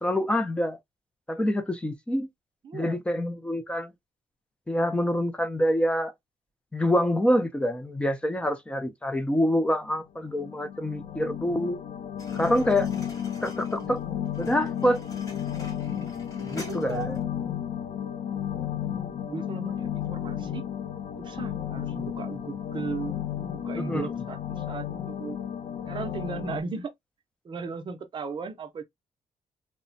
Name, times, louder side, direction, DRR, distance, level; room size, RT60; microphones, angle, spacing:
voice 1, 0.0-0.8 1.3-2.3 2.7-3.9 4.7-6.1 6.7-11.8 12.3-12.9 13.4-14.0 14.4-15.0 16.4-17.2 23.8-24.1, left 1 dB, 10° left, 0.4 m, -26 dB
voice 2, 2.6-3.0 13.8-13.9 16.7-17.1 19.3-20.6 21.2-23.1 23.5-25.4 25.9-26.9 27.4-28.8, right 5 dB, 40° right, 0.6 m, -36 dB
sound 1, 10.2-26.6, left 9 dB, 80° left, 0.5 m, -33 dB
sound 2, 12.2-17.2, left 1 dB, 25° left, 0.9 m, -46 dB
3.2 x 2.1 x 2.5 m
wide cardioid pair, 155°, 13 cm